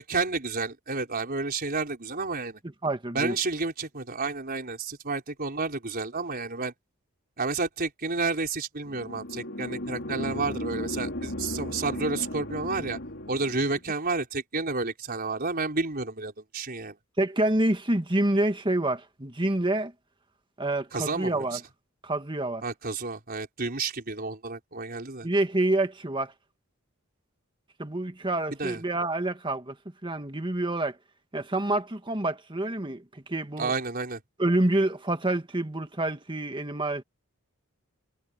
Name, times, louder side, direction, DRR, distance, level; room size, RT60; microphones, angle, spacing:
voice 1, 0.0-2.6 3.1-6.7 7.4-13.0 13.3-17.0 20.9-21.6 22.6-25.3 28.6-28.8 33.6-34.2, right 3 dB, 45° right, 4.5 m, -31 dB
voice 2, 2.8-3.3 17.2-19.9 20.6-21.6 22.0-22.6 25.2-26.3 27.8-29.7 30.0-30.9 31.3-33.7 34.4-37.0, right 1 dB, 20° right, 1.8 m, -27 dB
sound 1, 8.8-13.8, left 1 dB, 55° left, 4.4 m, -35 dB
head